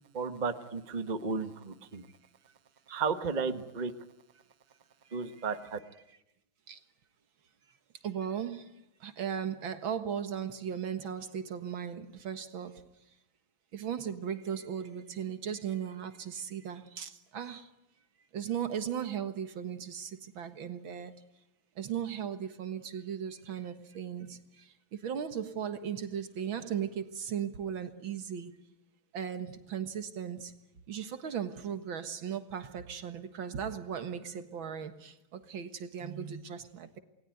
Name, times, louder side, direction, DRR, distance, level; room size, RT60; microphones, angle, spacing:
voice 1, 0.1-2.1 2.9-3.9 5.1-5.8, right 4 dB, 25° right, 1.3 m, -33 dB
voice 2, 8.0-8.6 9.0-12.8 13.7-17.6 18.3-21.1 21.8-24.4 25.0-28.5 29.1-30.5 30.9-37.0, right 8 dB, 65° right, 2.3 m, -37 dB
28.5 x 21.0 x 9.3 m
omnidirectional pair, 2.4 m